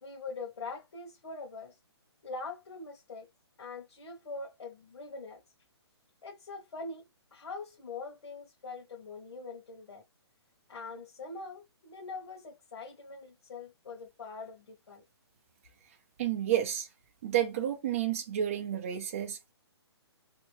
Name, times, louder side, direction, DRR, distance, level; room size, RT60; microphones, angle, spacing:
voice 1, 0.0-1.8 2.2-3.3 3.6-5.4 6.2-7.1 7.3-10.0 10.7-15.0, left 3 dB, 70° left, 1.2 m, -43 dB
voice 2, 16.2-16.9 17.2-19.5, right 11 dB, 30° right, 0.7 m, -30 dB
3.3 x 2.9 x 3.1 m
hypercardioid pair, 165°, 14 cm